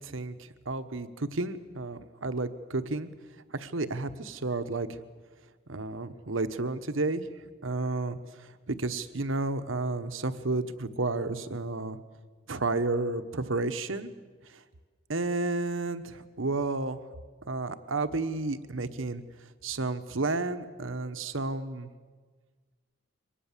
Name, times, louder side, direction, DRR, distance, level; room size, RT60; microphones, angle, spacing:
voice 1, 0.0-3.1 3.5-5.0 5.7-7.3 7.6-12.0 12.5-14.1 14.5-14.6 15.1-17.0 17.5-19.2 19.6-21.9, right 3 dB, 75° right, 10 dB, 1.2 m, -31 dB
24.0 x 19.0 x 7.4 m, 1.4 s
head